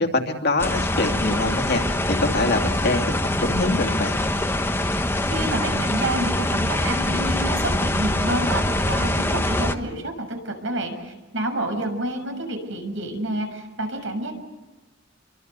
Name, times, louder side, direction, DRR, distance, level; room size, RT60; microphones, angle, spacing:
voice 1, 0.0-4.2, left 2 dB, 55° left, 4 dB, 2.6 m, -24 dB
sound 1, 0.6-9.8, left 1 dB, 10° left, 1.2 m, -24 dB
voice 2, 5.3-14.4, right 1 dB, 70° right, 5 dB, 6.6 m, -29 dB
29.5 x 24.0 x 6.8 m, 1.2 s
head